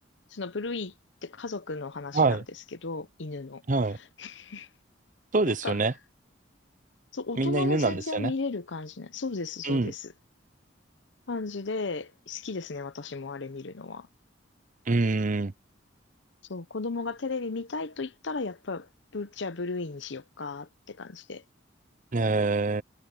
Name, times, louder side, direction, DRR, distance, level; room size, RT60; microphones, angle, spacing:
voice 1, 0.3-0.9 1.2-2.4 2.8-3.6 4.2-4.7 5.5-5.8 7.1-10.1 11.3-14.1 16.5-18.9 19.1-21.4, left 3 dB, 70° left, 0.9 m, -35 dB
voice 2, 2.1-2.4 3.7-4.0 5.3-5.9 7.4-8.3 9.6-9.9 14.9-15.5 22.1-22.8, right 3 dB, 45° right, 0.7 m, -25 dB
head